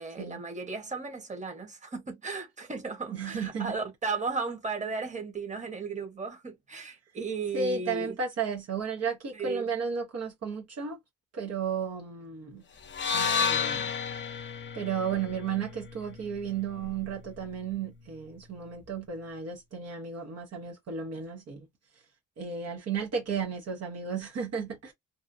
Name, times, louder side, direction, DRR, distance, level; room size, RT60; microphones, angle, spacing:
voice 1, 0.0-8.1 9.3-9.7, right 4 dB, 25° right, 1.2 m, -35 dB
voice 2, 3.1-3.8 7.5-11.0 11.3-12.6 13.1-13.9 14.7-21.7 22.4-24.9, right 6 dB, 55° right, 0.9 m, -33 dB
sound 1, 12.9-17.1, left 6 dB, 40° left, 0.6 m, -32 dB
2.8 x 2.3 x 2.5 m
cardioid pair, 90°, 30 cm